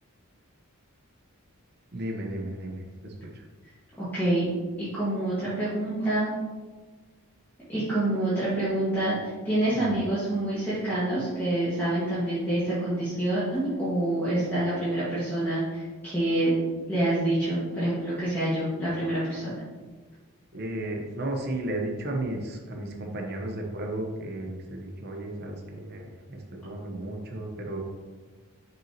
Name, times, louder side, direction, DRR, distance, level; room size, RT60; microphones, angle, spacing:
voice 1, 1.9-3.4 9.7-10.0 20.5-27.8, right 1 dB, 45° right, 2 dB, 0.9 m, -34 dB
voice 2, 4.0-4.5 4.8-6.3 7.7-16.5 16.9-19.6, right 1 dB, 10° left, -12 dB, 1.6 m, -27 dB
6.0 x 5.9 x 2.9 m, 1.4 s
head